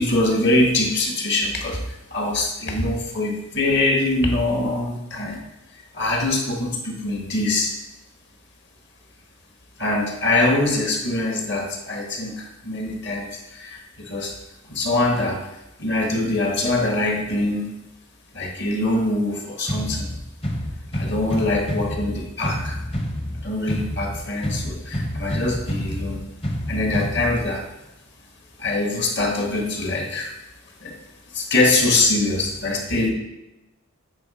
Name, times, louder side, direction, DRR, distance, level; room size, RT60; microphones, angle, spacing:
voice 1, 0.0-1.8 2.1-5.4 5.9-7.7 9.8-14.3 14.7-15.4 15.8-17.7 18.3-20.1 20.9-22.8 23.4-26.2 26.7-27.7 28.6-30.3 30.8-30.9 31.3-33.1, left 2 dB, 50° left, 1 dB, 1.4 m, -23 dB
sound 1, 19.7-27.7, equal, 25° left, 0.8 m, -28 dB
8.3 x 4.2 x 4.9 m, 0.93 s
head